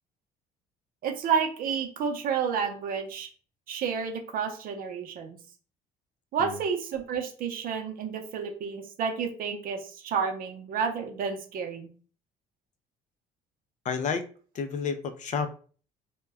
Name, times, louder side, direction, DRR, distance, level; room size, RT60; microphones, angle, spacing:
voice 1, 1.0-3.3 3.7-5.4 6.3-11.9, right 6 dB, 60° right, 4 dB, 0.6 m, -30 dB
voice 2, 13.8-14.3 14.5-15.5, left 6 dB, 45° left, 9 dB, 0.4 m, -30 dB
2.1 x 2.1 x 3.4 m, 0.41 s
cardioid pair, 110°, 17 cm